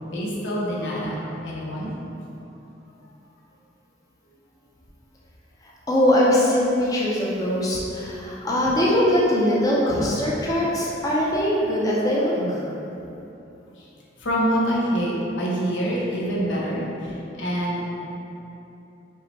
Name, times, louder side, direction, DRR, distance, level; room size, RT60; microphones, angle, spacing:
voice 1, 0.1-1.2 1.4-1.9 12.4-12.5 14.2-16.8 17.4-17.8, equal, 90° left, -5 dB, 0.7 m, -25 dB
voice 2, 5.6-12.7, left 1 dB, 20° left, -6 dB, 0.5 m, -21 dB
5.2 x 2.1 x 3.1 m, 2.9 s
head